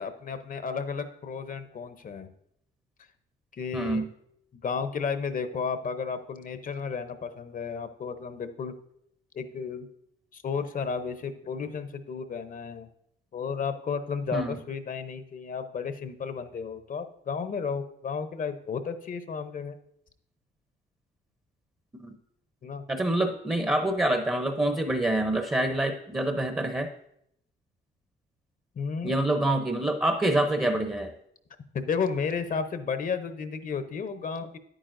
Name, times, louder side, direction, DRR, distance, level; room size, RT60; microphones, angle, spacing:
voice 1, 0.0-2.3 3.5-4.1 4.5-8.7 9.3-9.9 10.3-12.9 13.3-19.8 22.6-22.8 28.8-29.1 31.7-34.6, left 5 dB, 45° left, 10 dB, 0.7 m, -33 dB
voice 2, 3.7-4.1 14.3-14.6 22.0-22.1 22.9-26.9 29.0-31.1, right 1 dB, 15° right, 6 dB, 0.7 m, -26 dB
9.8 x 8.8 x 2.6 m, 0.73 s
cardioid pair, 90°, 20 cm